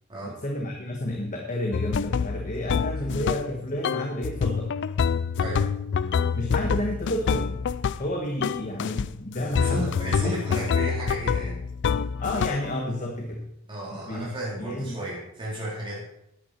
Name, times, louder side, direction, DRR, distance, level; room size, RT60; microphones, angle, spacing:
voice 1, 0.2-4.7 6.3-7.6 8.0-10.0 12.2-13.5 13.9-14.3 14.6-15.0, left 1 dB, 35° left, 1 dB, 1.3 m, -30 dB
sound 1, 1.7-3.6 3.8-8.1 8.4-9.1 9.6-12.7, left 6 dB, 55° left, 0.4 m, -26 dB
voice 2, 5.4-5.7 9.5-11.6 13.7-16.0, right 1 dB, 25° right, -6 dB, 3.7 m, -33 dB
11.5 x 9.6 x 4.4 m, 0.82 s
head